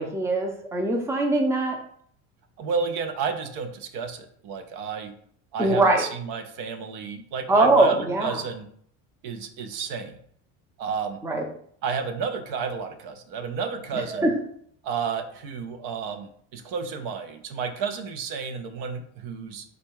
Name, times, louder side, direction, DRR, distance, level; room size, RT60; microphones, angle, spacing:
voice 1, 0.0-1.8 5.6-6.0 7.5-8.4 11.2-11.4 13.9-14.3, right 2 dB, 10° right, 2 dB, 0.5 m, -22 dB
voice 2, 2.6-5.1 5.5-8.6 9.2-10.1 10.8-11.2 11.8-14.3 14.8-19.6, right 6 dB, 70° right, 8 dB, 0.7 m, -31 dB
4.0 x 2.3 x 4.6 m, 0.63 s
cardioid pair, 135°, 36 cm